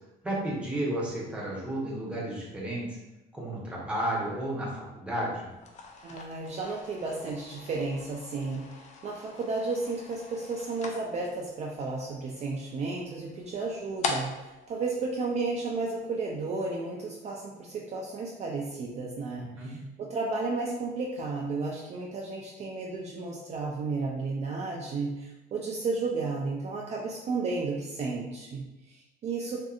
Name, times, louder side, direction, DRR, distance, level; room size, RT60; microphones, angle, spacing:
voice 1, 0.2-3.0 3.3-5.5 19.4-19.8, right 1 dB, 5° right, -5 dB, 0.8 m, -32 dB
sound 1, 5.5-15.9, left 4 dB, 45° left, 0.4 m, -42 dB
voice 2, 6.0-29.6, right 3 dB, 40° right, -2 dB, 0.4 m, -33 dB
2.6 x 2.5 x 2.4 m, 0.99 s
cardioid pair, 110°, 17 cm